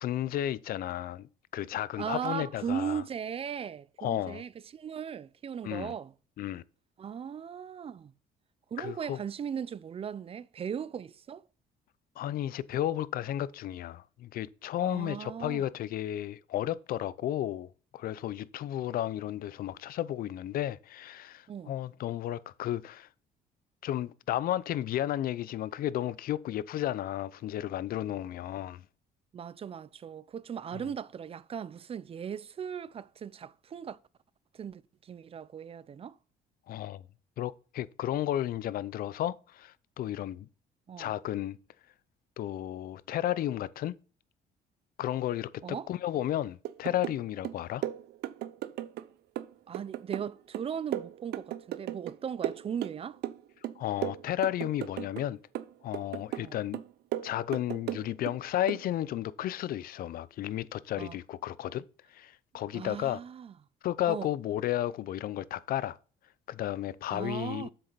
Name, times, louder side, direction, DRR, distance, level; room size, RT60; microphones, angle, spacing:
voice 1, 0.0-3.0 4.0-4.4 5.6-5.9 6.4-6.6 8.8-9.2 12.2-23.1 23.8-28.8 36.7-37.0 37.4-40.5 41.0-41.6 42.4-43.9 45.0-47.8 53.8-55.4 55.8-56.8 57.2-61.8 62.1-63.2 63.8-66.0 66.5-67.7, left 12 dB, 60° left, 0.6 m, -33 dB
voice 2, 2.0-6.1 7.0-8.1 8.7-11.4 14.8-15.6 21.5-21.7 29.3-34.0 34.5-36.2 40.9-41.1 45.6-45.9 49.7-53.2 56.4-56.6 61.0-61.2 62.7-63.5 64.1-64.3 67.1-67.7, right 7 dB, 35° right, 0.6 m, -38 dB
sound 1, 46.6-47.2 47.4-49.1 49.4-52.2 52.4-53.4 53.6-55.3 55.5-56.5 56.7-58.4 58.7-58.9, right 13 dB, 75° right, 0.6 m, -36 dB
7.7 x 6.7 x 4.0 m
cardioid pair, 110°, 17 cm